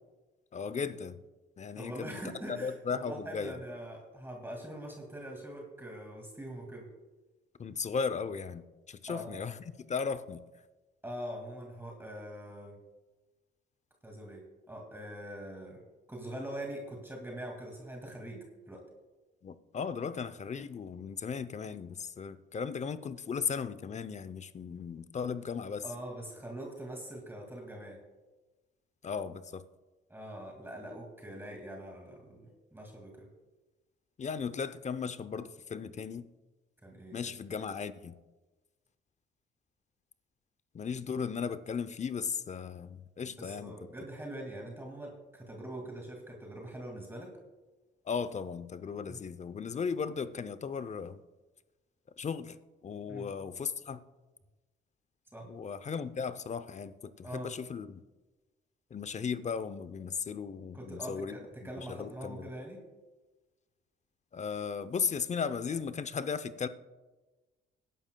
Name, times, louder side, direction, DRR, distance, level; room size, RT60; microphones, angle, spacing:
voice 1, 0.5-1.2 1.6-2.2 2.6-3.6 7.6-9.6 9.9-10.4 19.4-25.8 29.0-29.6 34.2-36.3 37.1-38.2 40.7-43.7 48.1-51.2 52.2-52.6 52.8-54.0 55.5-58.0 58.9-61.4 61.6-62.5 64.3-66.7, left 6 dB, 35° left, 13 dB, 0.6 m, -36 dB
voice 2, 1.8-6.9 9.1-9.3 11.0-12.8 14.0-15.8 16.1-18.8 25.8-28.0 30.1-33.3 36.8-37.3 43.4-47.3 49.1-49.2 53.1-53.3 55.3-55.5 57.2-57.5 60.7-62.8, right 1 dB, 10° right, 0 dB, 2.2 m, -43 dB
21.5 x 11.0 x 2.3 m, 1.2 s
cardioid pair, 90°, 20 cm